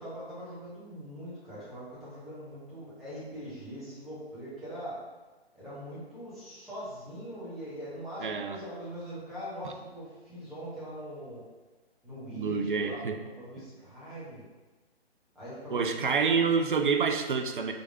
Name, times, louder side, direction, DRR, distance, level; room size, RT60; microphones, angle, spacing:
voice 1, 0.0-5.0 5.6-11.4 12.0-14.4 15.3-16.1, equal, ahead, -14 dB, 0.6 m, -42 dB
voice 2, 8.2-8.6 12.3-13.1 13.6-13.7 15.7-17.7, right 5 dB, 50° right, 5 dB, 0.4 m, -27 dB
4.6 x 3.8 x 2.5 m, 1.2 s
figure-of-eight pair, 135°, 32 cm